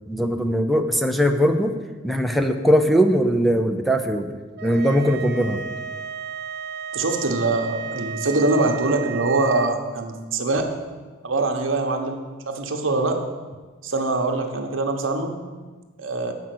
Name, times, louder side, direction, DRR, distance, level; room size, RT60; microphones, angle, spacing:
voice 1, 0.1-1.7 2.0-4.3 4.6-5.6, equal, ahead, 5 dB, 0.5 m, -20 dB
sound 1, 4.6-9.7, right 6 dB, 55° right, 0.4 m, -33 dB
voice 2, 6.9-10.7 11.2-13.2 13.8-15.4 16.0-16.3, right 2 dB, 70° right, 3 dB, 1.1 m, -23 dB
7.5 x 5.7 x 7.7 m, 1.4 s
head